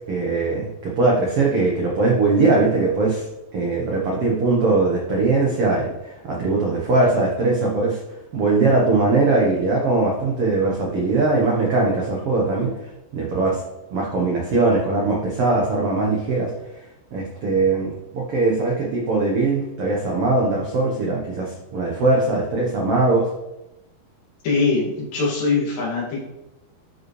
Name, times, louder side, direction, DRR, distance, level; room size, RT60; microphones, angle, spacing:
voice 1, 0.1-3.3 3.5-8.0 8.3-12.7 13.1-13.6 13.9-16.5 17.1-23.3, right 3 dB, 85° right, -2 dB, 1.3 m, -20 dB
voice 2, 24.4-26.3, left 4 dB, 65° left, -4 dB, 3.9 m, -22 dB
12.0 x 5.3 x 3.2 m, 0.93 s
omnidirectional pair, 4.5 m